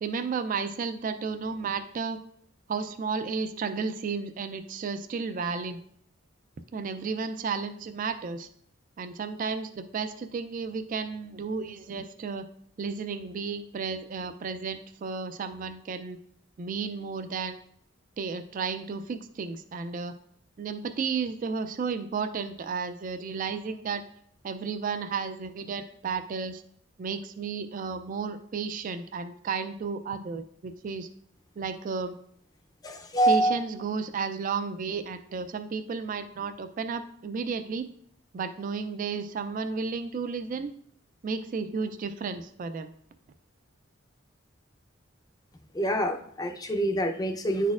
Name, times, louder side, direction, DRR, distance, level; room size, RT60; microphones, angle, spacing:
voice 1, 0.0-2.2 2.7-5.8 6.7-8.5 9.0-12.4 12.8-16.2 16.6-17.6 18.2-20.1 20.6-24.0 24.4-26.6 27.0-31.1 31.6-32.1 33.3-37.9 38.3-40.7 41.2-42.9, right 5 dB, 40° right, 9 dB, 0.3 m, -33 dB
voice 2, 32.8-33.6 45.7-47.7, right 1 dB, 20° left, 5 dB, 0.5 m, -26 dB
10.0 x 4.1 x 2.4 m, 0.65 s
head